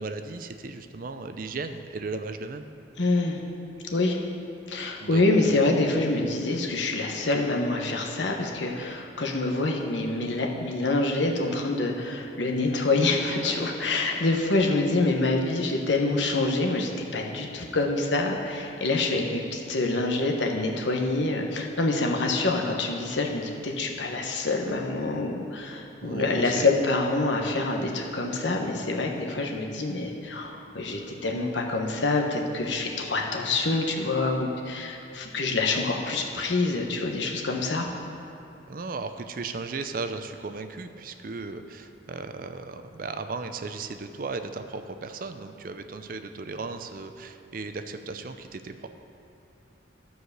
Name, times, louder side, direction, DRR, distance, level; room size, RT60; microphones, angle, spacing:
voice 1, 0.0-2.6 5.0-5.6 26.0-26.7 38.7-48.9, right 3 dB, 50° right, 8 dB, 0.5 m, -36 dB
voice 2, 3.0-3.4 3.9-4.2 4.7-37.9, left 2 dB, 75° left, 1 dB, 1.1 m, -26 dB
13.0 x 4.8 x 6.6 m, 2.7 s
head